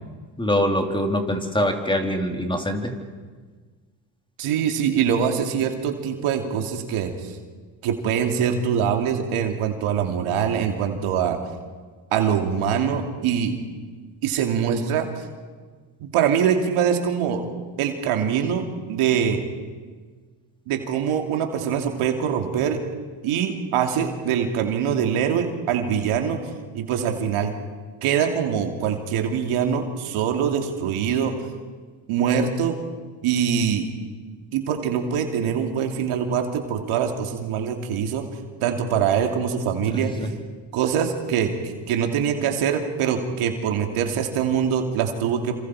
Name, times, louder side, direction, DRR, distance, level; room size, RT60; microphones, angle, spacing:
voice 1, 0.4-2.9 39.9-40.3, equal, 10° left, 3 dB, 3.6 m, -24 dB
voice 2, 4.4-7.4 7.8-11.4 12.1-13.6 14.2-15.2 16.0-17.4 17.8-19.4 20.7-22.8 23.2-26.4 26.7-27.5 28.0-31.3 32.1-32.8 33.2-33.9 34.5-38.2 38.6-40.3 40.7-45.6, right 8 dB, 80° right, 4 dB, 2.8 m, -23 dB
28.5 x 26.5 x 4.9 m, 1.5 s
supercardioid pair, 75°, 50 cm